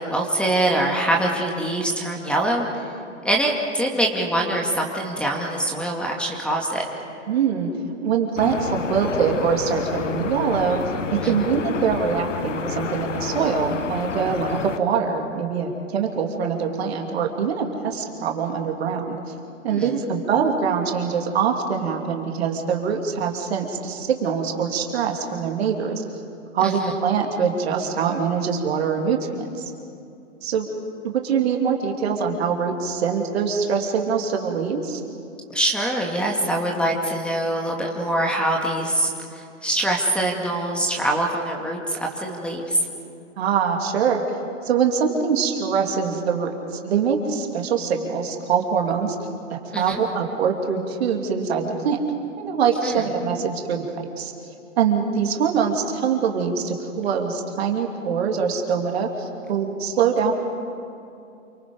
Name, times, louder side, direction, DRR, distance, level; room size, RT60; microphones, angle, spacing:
voice 1, 0.0-2.7 3.2-6.9 11.2-11.4 19.7-19.9 26.6-26.9 35.5-42.8 49.7-50.0 52.8-53.0, right 1 dB, 5° left, 0 dB, 2.4 m, -24 dB
voice 2, 7.3-7.7 8.0-10.8 11.1-19.2 19.6-26.0 26.5-29.6 30.4-30.7 31.0-35.0 43.4-44.2 44.6-49.2 49.5-52.0 52.4-54.3 54.8-60.3, right 6 dB, 55° right, 2 dB, 3.1 m, -23 dB
sound 1, 8.4-14.8, left 6 dB, 75° left, 1.2 m, -29 dB
28.5 x 24.5 x 5.4 m, 2.6 s
figure-of-eight pair, 115°, 37 cm